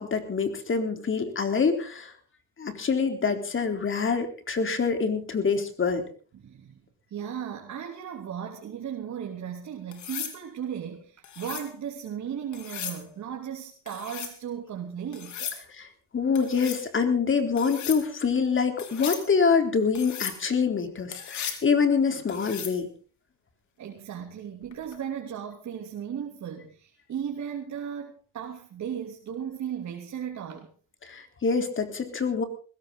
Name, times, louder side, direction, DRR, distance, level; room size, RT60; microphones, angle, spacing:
voice 1, 0.0-2.1 2.6-6.0 15.7-15.9 16.1-22.9 31.0-32.4, left 5 dB, 40° left, 7 dB, 3.9 m, -25 dB
voice 2, 6.3-6.8 7.1-15.6 23.8-30.7, right 8 dB, 65° right, 0 dB, 3.3 m, -36 dB
sound 1, 9.9-10.4 11.2-11.7 12.5-13.0 13.9-14.4 15.1-15.6 16.4-16.8 17.6-18.0 18.8-19.3 20.0-20.4 21.1-21.6 22.3-22.8 24.7-25.0, left 9 dB, 75° left, 3.7 m, -36 dB
20.0 x 17.0 x 4.0 m, 0.39 s
cardioid pair, 90°, 30 cm